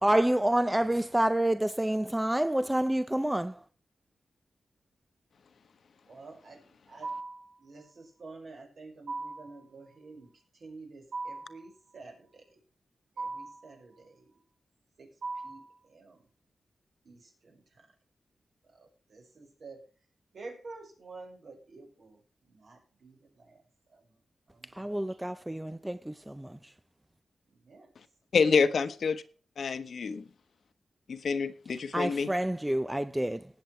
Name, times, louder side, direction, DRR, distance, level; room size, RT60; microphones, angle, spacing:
voice 1, 0.0-3.6 24.7-26.6 31.9-33.5, right 1 dB, 10° right, 0.5 m, -28 dB
voice 2, 6.1-7.1 7.6-10.3 10.6-12.4 13.2-14.3 15.0-15.1 15.4-16.2 17.0-17.6 18.8-19.8 20.3-22.2 22.5-23.6 23.9-24.1 24.5-25.0 25.7-25.8 27.5-27.9, right 3 dB, 65° right, 5.7 m, -50 dB
sound 1, 7.0-7.5 9.1-9.6 11.1-11.6 13.2-13.6 15.2-15.7, right 3 dB, 85° right, 6.5 m, -37 dB
voice 3, 28.3-29.2 29.6-30.2 31.1-32.3, left 5 dB, 75° left, 1.1 m, -27 dB
19.0 x 7.8 x 3.3 m
wide cardioid pair, 95°, 0 cm